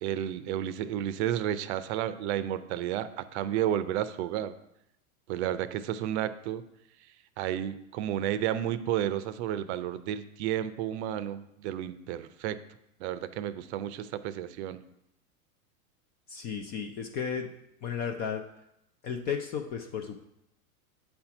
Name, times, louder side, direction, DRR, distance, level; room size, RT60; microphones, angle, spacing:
voice 1, 0.0-4.5 5.3-6.6 7.4-12.6 13.0-14.8, right 11 dB, 50° right, 14 dB, 0.6 m, -32 dB
voice 2, 16.3-17.5 17.8-18.5 19.0-20.2, left 7 dB, 25° left, 5 dB, 0.3 m, -34 dB
8.4 x 4.4 x 5.8 m, 0.81 s
supercardioid pair, 130°, 43 cm